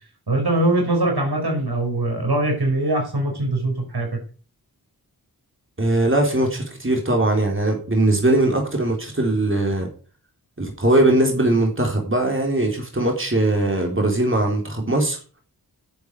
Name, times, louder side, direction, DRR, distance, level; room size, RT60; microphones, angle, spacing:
voice 1, 0.3-4.2, right 1 dB, 80° right, 2 dB, 5.3 m, -22 dB
voice 2, 5.8-9.9 10.6-15.2, right 1 dB, 30° right, 2 dB, 3.8 m, -20 dB
10.5 x 8.4 x 8.3 m, 0.40 s
wide cardioid pair, 55°, 38 cm